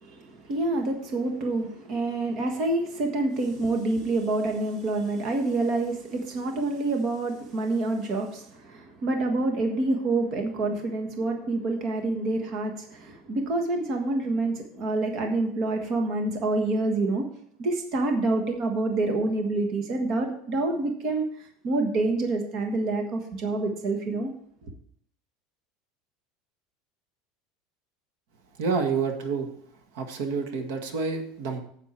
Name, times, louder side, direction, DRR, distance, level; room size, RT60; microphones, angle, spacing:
voice 1, 0.0-17.3 17.6-21.2 21.6-24.3, right 2 dB, 35° right, 3 dB, 1.5 m, -27 dB
voice 2, 28.6-29.5 29.9-31.6, right 5 dB, 70° right, 5 dB, 1.7 m, -28 dB
9.9 x 8.3 x 4.5 m, 0.64 s
cardioid pair, 175°, 0 cm